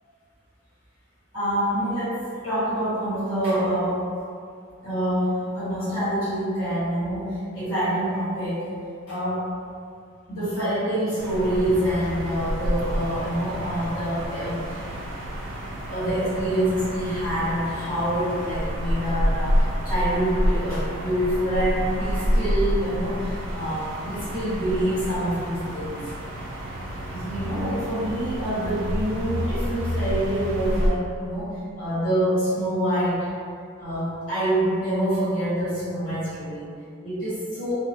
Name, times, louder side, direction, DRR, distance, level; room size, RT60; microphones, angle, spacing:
voice 1, 1.3-2.2 2.4-4.0 4.8-8.7 9.1-9.4 10.3-14.9 15.9-25.9 27.1-31.5 31.8-33.3 33.8-36.6 37.0-37.7, right 1 dB, 75° left, -12 dB, 1.4 m, -26 dB
sound 1, 11.2-30.9, equal, 65° right, 0.4 m, -28 dB
2.8 x 2.0 x 2.7 m, 2.3 s
head